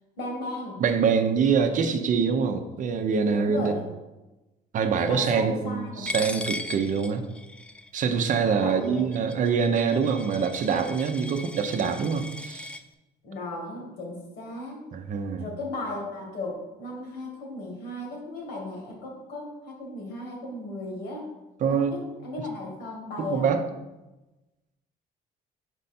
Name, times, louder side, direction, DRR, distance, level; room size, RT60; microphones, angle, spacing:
voice 1, 0.2-0.8 3.3-3.9 5.1-6.1 8.4-9.1 13.2-14.8 15.4-21.2 21.7-23.6, left 2 dB, 75° left, 0 dB, 2.0 m, -36 dB
voice 2, 0.8-3.7 4.7-7.2 7.9-12.8 14.9-15.5 21.6-22.0 23.2-23.6, right 6 dB, 50° right, 7 dB, 0.6 m, -25 dB
Coin (dropping), 6.1-12.8, left 2 dB, 5° left, 0.3 m, -38 dB
5.2 x 4.5 x 4.3 m, 1.0 s
cardioid pair, 110°, 17 cm